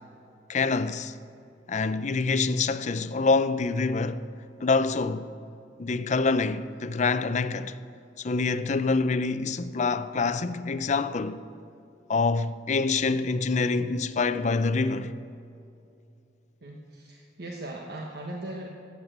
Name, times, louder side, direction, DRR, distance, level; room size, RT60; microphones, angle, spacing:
voice 1, 0.5-1.2 1.7-4.2 4.6-5.3 5.8-7.8 8.2-11.4 12.1-15.2, left 4 dB, 40° left, 0.5 m, -26 dB
voice 2, 16.6-18.7, right 1 dB, 60° right, 1.3 m, -38 dB
14.0 x 8.8 x 8.0 m
head